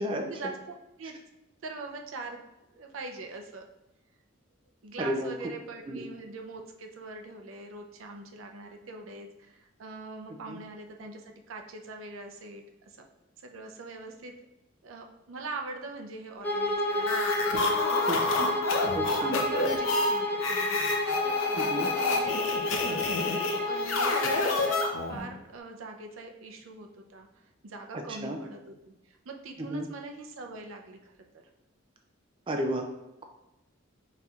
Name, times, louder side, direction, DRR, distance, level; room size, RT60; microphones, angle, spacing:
voice 1, 0.2-0.6 1.0-1.1 1.6-2.4 2.7-3.7 4.8-13.0 13.4-14.3 14.8-18.7 19.2-20.8 21.2-23.0 23.6-24.8 25.1-27.3 27.6-31.2, right 3 dB, 80° right, 3 dB, 0.5 m, -42 dB
voice 2, 5.0-5.3 5.9-6.0 10.5-10.6 18.0-18.5 18.9-19.4 21.6-21.9 27.9-28.4 29.7-29.9 32.5-32.9, right 1 dB, 25° right, 3 dB, 0.4 m, -32 dB
Bowed string instrument, 16.4-25.0, left 2 dB, 10° left, 0.7 m, -30 dB
sound 1, 17.0-25.3, left 3 dB, 75° left, 0.6 m, -29 dB
4.2 x 4.1 x 2.4 m, 0.95 s
head